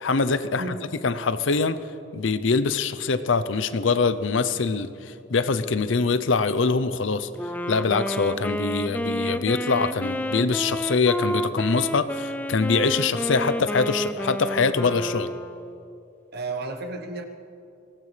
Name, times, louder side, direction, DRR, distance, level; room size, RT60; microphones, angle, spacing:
voice 1, 0.0-0.7 1.0-1.8 2.1-7.3 7.7-15.3, left 4 dB, 70° left, 13 dB, 0.6 m, -24 dB
Wind instrument woodwind instrument, 7.4-16.0, equal, 10° left, 0.4 m, -30 dB
voice 2, 16.3-17.2, right 2 dB, 55° right, 5 dB, 1.1 m, -32 dB
23.0 x 18.0 x 3.3 m, 2.6 s
head